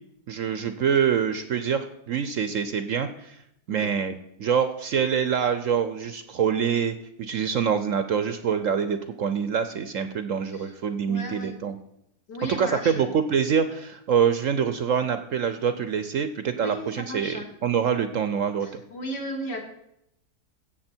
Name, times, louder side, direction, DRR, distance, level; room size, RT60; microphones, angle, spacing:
voice 1, 0.3-3.4 3.7-11.8 12.5-18.8, right 7 dB, 60° right, 10 dB, 0.9 m, -25 dB
voice 2, 11.1-11.6 12.3-13.1 16.5-17.5 18.6-19.6, equal, 75° left, 1 dB, 2.9 m, -35 dB
16.5 x 7.3 x 4.4 m, 0.79 s
omnidirectional pair, 1.8 m